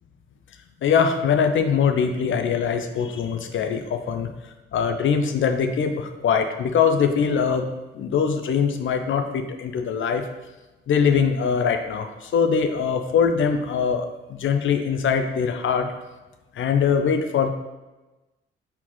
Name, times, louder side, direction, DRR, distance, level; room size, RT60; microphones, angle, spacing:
voice 1, 0.8-4.3 4.7-10.2 10.9-15.9 16.5-17.5, left 6 dB, 45° left, 6 dB, 0.6 m, -22 dB
4.2 x 4.1 x 3.0 m, 1.1 s
figure-of-eight pair, 45°, 29 cm